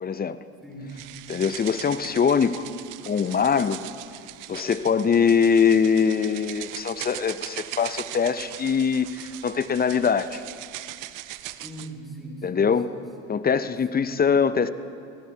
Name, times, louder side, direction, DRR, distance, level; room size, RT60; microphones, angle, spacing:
voice 1, 0.0-0.4 1.3-2.7 3.0-3.8 4.5-10.4 12.4-12.9 13.3-14.7, left 6 dB, 25° left, 14 dB, 0.5 m, -22 dB
voice 2, 0.6-1.0 11.6-13.5 13.9-14.1, right 1 dB, ahead, 0 dB, 2.6 m, -41 dB
sound 1, 0.9-11.9, right 15 dB, 60° right, 0.6 m, -40 dB
20.0 x 15.0 x 2.8 m, 2.3 s
hypercardioid pair, 60°, 37 cm